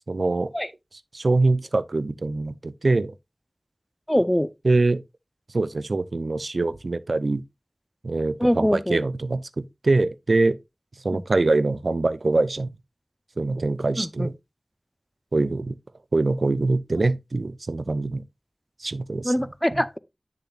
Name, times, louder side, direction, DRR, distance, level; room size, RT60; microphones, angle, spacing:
voice 1, 0.1-0.5 1.1-3.1 4.6-5.0 5.5-7.4 8.0-10.6 11.0-12.7 13.4-14.3 15.3-15.7 16.1-18.2 18.8-19.3 19.7-19.8, right 3 dB, 85° right, 0.5 m, -23 dB
voice 2, 4.1-4.5 8.4-9.0 11.1-11.2 14.0-14.3 16.9-17.0 19.2-20.0, equal, 10° left, 0.7 m, -23 dB
9.9 x 6.8 x 2.4 m
wide cardioid pair, 50°, 0 cm